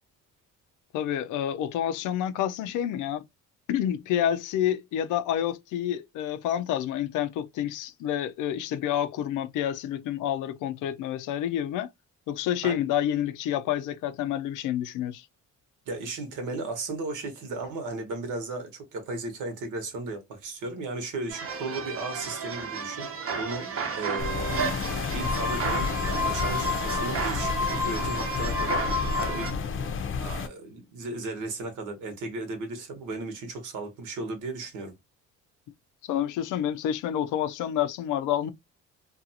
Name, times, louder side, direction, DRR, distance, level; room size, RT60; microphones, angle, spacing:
voice 1, 0.9-3.2 3.7-11.9 12.3-15.3 36.0-38.5, left 10 dB, 90° left, 0.5 m, -28 dB
voice 2, 15.9-23.1 23.3-24.6 25.1-28.8 29.1-29.5 30.1-34.9, right 2 dB, 80° right, 1.1 m, -35 dB
sound 1, 21.3-29.5, right 5 dB, 50° right, 0.7 m, -33 dB
sound 2, 24.2-30.5, left 5 dB, 45° left, 0.5 m, -31 dB
sound 3, 25.2-29.6, left 4 dB, 10° right, 0.3 m, -31 dB
2.5 x 2.3 x 2.7 m
cardioid pair, 90°, 30 cm